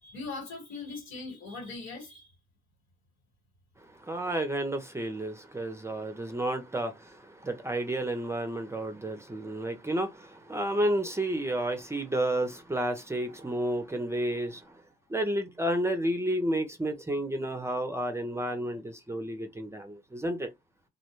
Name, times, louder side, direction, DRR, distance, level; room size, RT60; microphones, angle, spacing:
voice 1, 0.0-2.3 13.4-13.6, left 3 dB, 85° left, 1.5 m, -40 dB
voice 2, 4.0-14.7 15.1-20.5, right 1 dB, 15° right, 0.5 m, -31 dB
2.3 x 2.1 x 2.9 m
cardioid pair, 90°, 20 cm